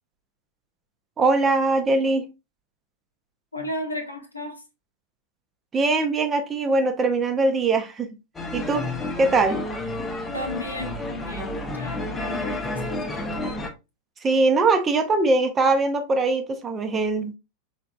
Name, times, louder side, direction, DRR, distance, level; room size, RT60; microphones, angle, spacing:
voice 1, 1.2-2.3 5.7-8.2 8.5-8.9 9.2-9.6 14.2-17.3, right 3 dB, 20° right, 0.7 m, -21 dB
voice 2, 3.5-4.6 10.3-13.6, left 1 dB, 80° left, 0.9 m, -34 dB
sound 1, 8.3-13.7, left 2 dB, 15° left, 0.8 m, -30 dB
5.0 x 3.4 x 2.4 m
figure-of-eight pair, 90°, 0 cm